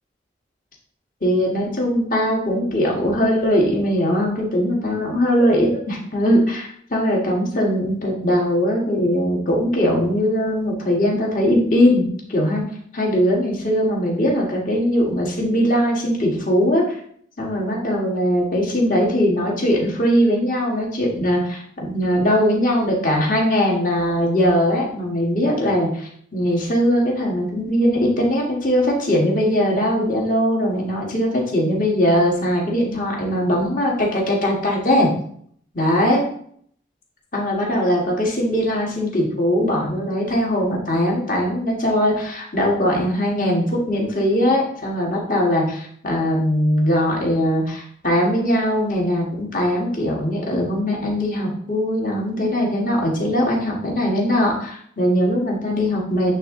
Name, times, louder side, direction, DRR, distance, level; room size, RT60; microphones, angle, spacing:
voice 1, 1.2-12.6 12.9-16.8 17.4-35.1 35.7-36.2 37.3-56.4, equal, 45° left, -2 dB, 1.6 m, -20 dB
8.4 x 3.5 x 3.7 m, 0.63 s
head